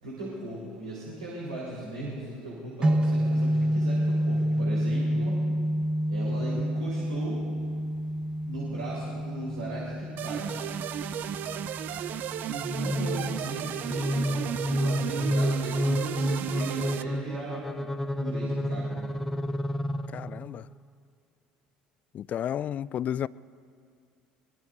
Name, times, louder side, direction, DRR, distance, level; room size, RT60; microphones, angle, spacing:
voice 1, 0.0-5.4 6.1-7.4 8.4-10.7 12.4-19.2, right 1 dB, 80° right, 4.1 m, -38 dB
sound 1, 2.8-14.9, equal, 25° right, 0.9 m, -29 dB
sound 2, 10.2-17.0, right 10 dB, 50° right, 0.6 m, -34 dB
sound 3, 12.6-20.6, equal, 5° left, 0.7 m, -30 dB
voice 2, 20.1-20.7 22.1-23.3, left 10 dB, 40° left, 0.3 m, -32 dB
23.5 x 22.5 x 2.7 m
figure-of-eight pair, 65°, 4 cm